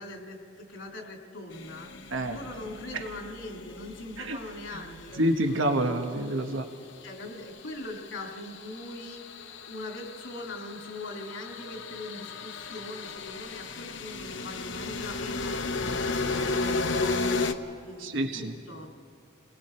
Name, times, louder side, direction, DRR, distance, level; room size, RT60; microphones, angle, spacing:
voice 1, 0.0-5.6 7.0-9.2 9.7-15.6 16.0-18.9, left 2 dB, 90° left, 1 dB, 2.7 m, -41 dB
sound 1, 1.5-5.9 7.4-17.5, left 3 dB, 70° left, 0.9 m, -34 dB
voice 2, 5.2-6.7 18.0-18.5, right 1 dB, 85° right, 5 dB, 1.2 m, -27 dB
29.5 x 20.0 x 4.5 m, 2.3 s
head